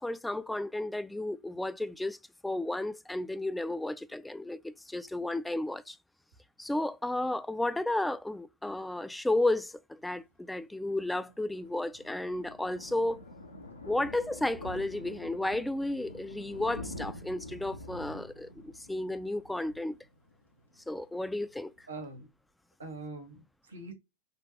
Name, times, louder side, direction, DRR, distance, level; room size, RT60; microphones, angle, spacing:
voice 1, 0.0-2.2 2.4-6.0 6.6-13.2 13.9-20.0 20.9-21.7, left 1 dB, 5° left, 0.3 m, -33 dB
Thunder, 11.2-20.6 21.0-21.2 21.5-21.6 21.8-21.9, left 1 dB, 80° left, 1.0 m, -46 dB
voice 2, 21.9-22.3 22.8-23.9, right 3 dB, 80° right, 1.5 m, -43 dB
6.1 x 2.5 x 2.9 m
figure-of-eight pair, 90°, 0 cm